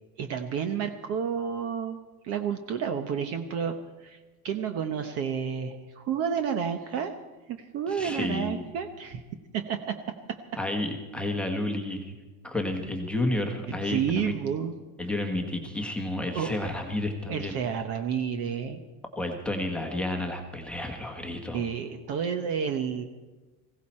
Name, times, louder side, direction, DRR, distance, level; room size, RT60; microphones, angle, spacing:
voice 1, 0.2-2.0 2.2-4.2 4.4-7.1 7.5-9.2 9.5-10.4 13.8-14.7 16.3-16.5 17.3-18.8 21.5-23.0, right 7 dB, 35° right, 7 dB, 0.9 m, -30 dB
voice 2, 7.9-8.7 10.6-12.1 12.4-14.3 15.0-17.6 19.2-21.6, left 1 dB, ahead, 2 dB, 1.3 m, -31 dB
20.5 x 16.5 x 4.3 m, 1.2 s
cardioid pair, 175°, 44 cm